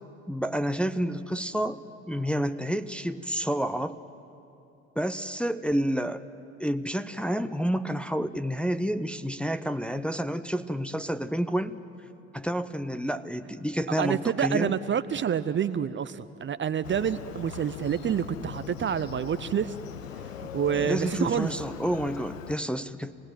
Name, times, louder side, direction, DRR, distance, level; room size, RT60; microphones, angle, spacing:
voice 1, 0.3-4.0 5.0-6.2 6.6-11.8 12.3-14.7 20.7-23.1, equal, 5° left, 9 dB, 0.8 m, -29 dB
voice 2, 14.0-19.7 20.4-21.5, right 8 dB, 30° right, 13 dB, 0.7 m, -28 dB
Motorcycle, 16.8-22.6, left 9 dB, 85° left, 0.7 m, -40 dB
26.5 x 19.5 x 9.3 m, 2.8 s
figure-of-eight pair, 60°, 38 cm